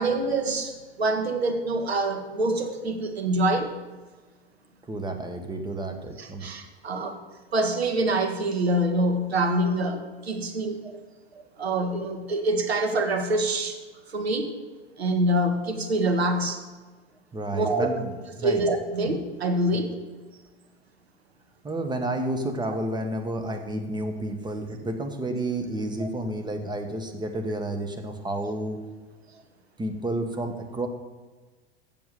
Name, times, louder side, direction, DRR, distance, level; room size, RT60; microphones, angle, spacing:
voice 1, 0.0-3.7 6.2-7.2 7.5-11.0 11.6-13.8 14.1-14.6 15.0-16.6 17.5-17.9 18.4-20.0 26.0-26.1, right 1 dB, 80° right, 5 dB, 1.5 m, -25 dB
voice 2, 4.9-6.5 17.3-18.6 21.6-28.8 29.8-30.9, right 1 dB, 15° right, 5 dB, 1.5 m, -30 dB
7.7 x 7.2 x 7.8 m, 1.3 s
figure-of-eight pair, 90°, 31 cm